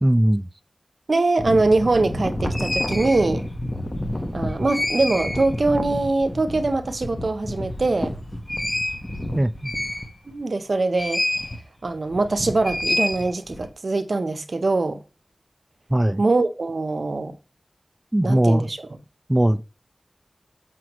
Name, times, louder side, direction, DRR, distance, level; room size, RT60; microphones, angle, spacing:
voice 1, 0.0-0.5 9.3-9.7 15.9-16.2 18.1-18.7 19.3-19.6, right 1 dB, 20° right, 0.4 m, -19 dB
voice 2, 1.1-3.5 4.3-8.1 10.3-11.2 11.8-15.0 16.2-17.4 18.2-18.8, right 3 dB, 65° right, 0.8 m, -22 dB
sound 1, 1.4-10.4 11.0-11.6 11.9-13.7, left 1 dB, 20° left, 1.2 m, -28 dB
7.6 x 6.0 x 3.0 m
wide cardioid pair, 55°, 0 cm